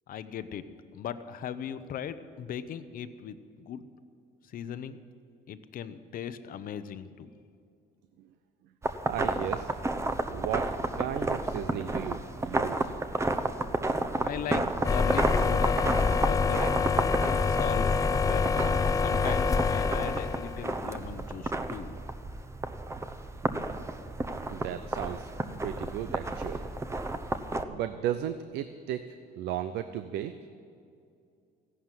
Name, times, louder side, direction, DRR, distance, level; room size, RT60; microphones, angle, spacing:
voice 1, 0.1-0.6 0.9-3.4 3.7-3.9 4.5-5.0 5.5-7.3 14.2-15.8 16.3-16.7 17.5-18.7 19.0-22.0, left 8 dB, 55° left, 11 dB, 0.8 m, -38 dB
sound 1, 8.8-27.6, right 2 dB, 15° right, 0.9 m, -32 dB
voice 2, 9.1-9.7 10.3-12.9 24.5-25.3 25.6-26.7 27.7-29.0 29.4-30.3, right 11 dB, 85° right, 11 dB, 0.6 m, -35 dB
sound 2, 14.8-20.8, left 5 dB, 20° left, 0.5 m, -26 dB
15.5 x 11.5 x 7.5 m, 2.4 s
cardioid pair, 110°, 17 cm